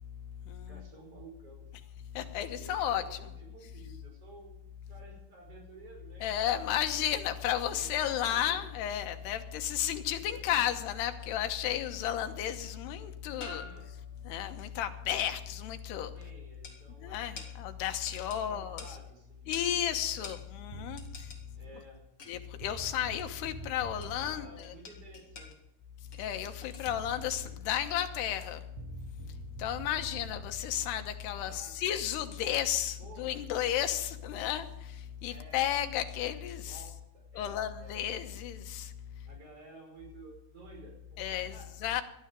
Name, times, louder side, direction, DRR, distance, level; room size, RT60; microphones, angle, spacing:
voice 1, 0.7-1.7 2.5-4.6 4.9-7.0 7.7-8.7 10.2-10.7 11.2-11.5 13.4-13.9 16.1-17.4 18.3-20.4 21.5-22.1 22.9-23.2 24.2-25.6 27.3-27.5 31.3-32.0 33.0-33.4 35.3-35.8 36.6-38.0 38.3-38.4 39.2-42.0, right 3 dB, 35° right, 1 dB, 5.9 m, -53 dB
voice 2, 2.2-3.2 6.2-13.6 14.3-16.1 17.0-19.0 19.5-21.0 22.3-24.7 26.2-28.6 29.6-34.7 35.2-36.8 37.3-38.9 41.2-42.0, left 10 dB, 85° left, 7 dB, 3.2 m, -33 dB
sound 1, 11.2-11.6 12.8-12.9 13.4-14.2 16.6-16.8 17.4-17.6 18.1-18.4 18.8-19.0 19.5-19.7 20.2-20.4 21.0-21.4 22.2-22.5 23.1-23.4 24.0-24.3 24.6-25.6 26.1-26.9 27.4-27.5, left 4 dB, 40° left, 2.4 m, -47 dB
sound 2, 20.7-21.2 22.3-22.4 22.6-24.3 26.5-26.6 26.9-27.5 28.8-30.5, right 7 dB, 65° right, 2.3 m, -46 dB
19.0 x 13.0 x 5.2 m, 0.88 s
omnidirectional pair, 4.6 m